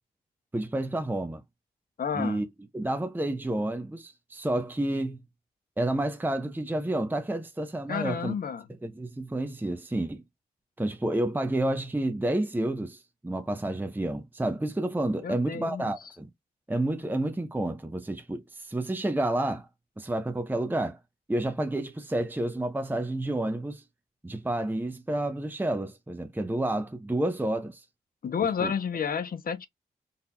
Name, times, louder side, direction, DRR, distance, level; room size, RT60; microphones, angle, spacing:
voice 1, 0.5-1.4 2.1-2.5 2.7-5.2 5.8-8.3 8.8-10.2 10.8-16.3 16.7-19.7 20.0-21.0 21.3-23.8 24.2-27.8 28.6-28.7, right 1 dB, 10° right, 0.7 m, -30 dB
voice 2, 2.0-2.4 7.9-8.7 15.2-15.9 28.2-29.7, left 7 dB, 60° left, 0.8 m, -30 dB
4.0 x 2.7 x 2.3 m
supercardioid pair, 40°, 17 cm